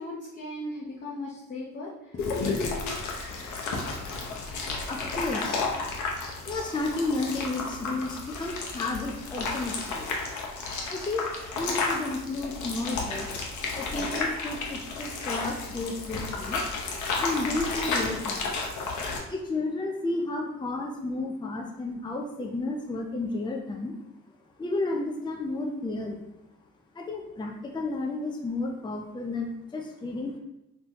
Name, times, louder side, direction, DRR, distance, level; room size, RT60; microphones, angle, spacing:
voice 1, 0.0-3.0, left 2 dB, 35° left, -6 dB, 0.9 m, -35 dB
sound 1, 2.2-19.2, left 3 dB, 70° left, 0.9 m, -32 dB
voice 2, 4.9-5.6 6.4-10.1 10.9-13.3 13.8-16.6 17.2-18.6 19.3-24.0 24.6-26.2 26.9-30.4, left 2 dB, 15° left, 1 dB, 0.5 m, -32 dB
3.8 x 2.9 x 3.0 m, 0.91 s
cardioid pair, 90°, 30 cm